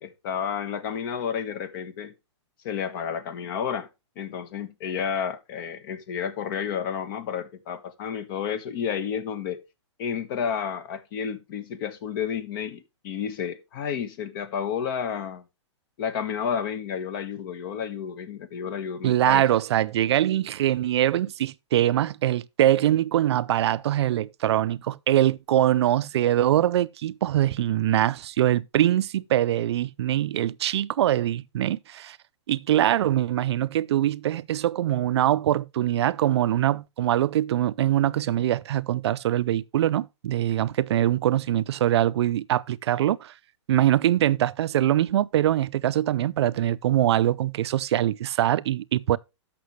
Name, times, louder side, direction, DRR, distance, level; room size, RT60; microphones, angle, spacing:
voice 1, 0.0-2.1 2.6-3.9 4.2-9.6 10.0-15.4 16.0-19.4, left 7 dB, 45° left, 1.4 m, -31 dB
voice 2, 19.0-32.2 32.5-43.3 43.7-49.2, right 12 dB, 65° right, 0.4 m, -23 dB
13.0 x 5.9 x 3.2 m
hypercardioid pair, 145°, 15 cm